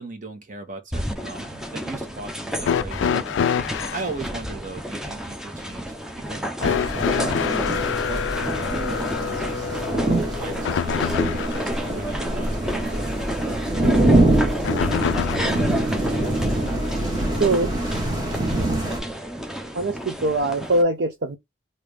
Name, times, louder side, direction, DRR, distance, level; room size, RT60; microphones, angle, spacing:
voice 1, 0.0-3.1 3.9-5.9 6.3-7.7 8.1-8.2 8.7-9.6 10.4-13.0, right 3 dB, 45° right, 1.1 m, -37 dB
sound 1, 0.9-20.8, equal, 5° right, 0.5 m, -32 dB
sound 2, 2.6-4.1 6.6-11.7 14.6-15.7 16.9-17.0 18.1-18.2, left 7 dB, 80° left, 0.3 m, -26 dB
sound 3, 6.6-19.0, right 1 dB, 20° right, 1.1 m, -24 dB
voice 2, 17.4-17.7 19.7-21.4, right 2 dB, 65° right, 0.5 m, -22 dB
3.4 x 2.7 x 3.3 m
head